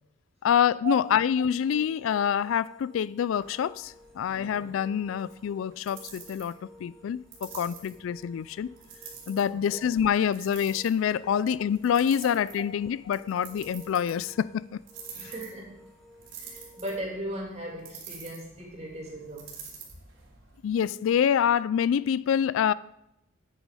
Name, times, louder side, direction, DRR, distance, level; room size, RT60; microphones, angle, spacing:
voice 1, 0.4-8.7 9.3-14.8 20.6-22.7, left 8 dB, 80° left, 0.3 m, -26 dB
sound 1, 1.0-17.0, left 1 dB, ahead, 1.2 m, -54 dB
sound 2, 3.3-20.8, right 6 dB, 75° right, 3.2 m, -49 dB
voice 2, 15.1-15.9 16.4-19.5, right 1 dB, 30° right, 2.9 m, -37 dB
9.0 x 9.0 x 4.9 m
head